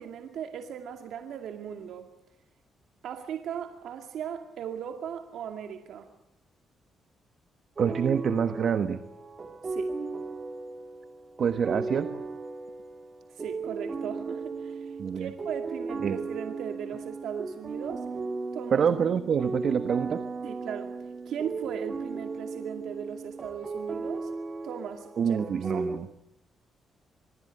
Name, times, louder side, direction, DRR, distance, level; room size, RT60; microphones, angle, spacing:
voice 1, 0.0-2.1 3.0-6.1 9.6-9.9 13.3-18.0 18.5-18.9 20.4-20.9 21.3-24.3 24.6-25.9, right 8 dB, 75° right, 5 dB, 2.3 m, -38 dB
sound 1, 7.8-26.0, right 4 dB, 35° right, 2.1 m, -36 dB
voice 2, 7.8-9.0 11.4-12.1 15.0-15.3 16.0-16.2 18.7-20.2 25.2-26.1, right 7 dB, 55° right, 10 dB, 1.3 m, -26 dB
25.0 x 23.0 x 9.3 m, 0.81 s
cardioid pair, 105°, 0 cm